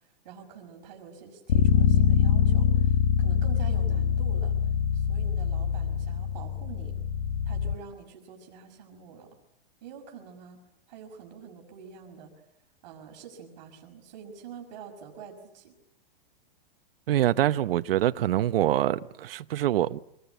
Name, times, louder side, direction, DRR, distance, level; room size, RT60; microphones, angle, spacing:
voice 1, 0.2-4.5 4.9-6.9 7.5-9.3 9.8-10.6 10.9-12.3 12.8-15.8, right 6 dB, 50° right, 5.6 m, -46 dB
Bass guitar, 1.5-7.7, left 7 dB, 70° left, 1.4 m, -24 dB
voice 2, 17.1-20.0, right 12 dB, 70° right, 1.0 m, -25 dB
26.5 x 21.0 x 9.1 m
supercardioid pair, 170°, 30 cm